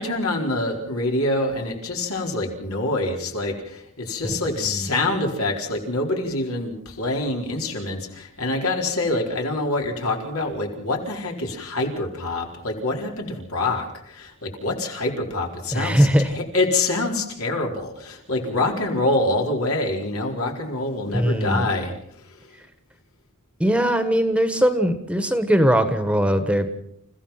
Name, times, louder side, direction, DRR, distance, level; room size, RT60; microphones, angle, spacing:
voice 1, 0.0-21.9, left 2 dB, 80° left, 1 dB, 4.4 m, -26 dB
voice 2, 4.2-4.9 15.7-16.3 21.1-21.7 23.6-26.7, equal, 5° right, 9 dB, 1.4 m, -21 dB
29.0 x 15.5 x 5.9 m, 0.74 s
head